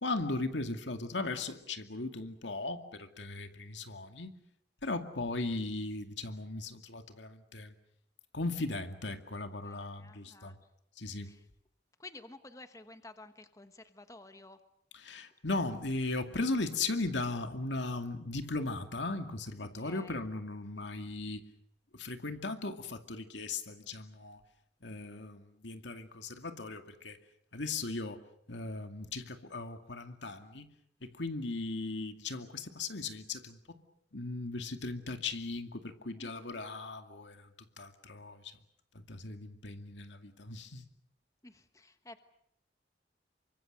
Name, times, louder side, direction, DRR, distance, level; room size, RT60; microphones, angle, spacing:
voice 1, 0.0-4.3 4.8-7.7 8.3-10.6 11.0-11.3 14.9-21.4 21.9-24.4 24.8-27.2 27.5-28.2 28.5-30.7 31.0-33.8 34.1-37.5 37.8-38.6 38.9-40.9, left 3 dB, 90° left, 7 dB, 2.3 m, -37 dB
voice 2, 9.5-10.6 11.2-11.4 12.0-14.6 19.8-20.2 36.2-36.6 41.4-42.2, left 2 dB, 20° left, 9 dB, 1.2 m, -52 dB
28.5 x 24.5 x 6.6 m, 0.73 s
head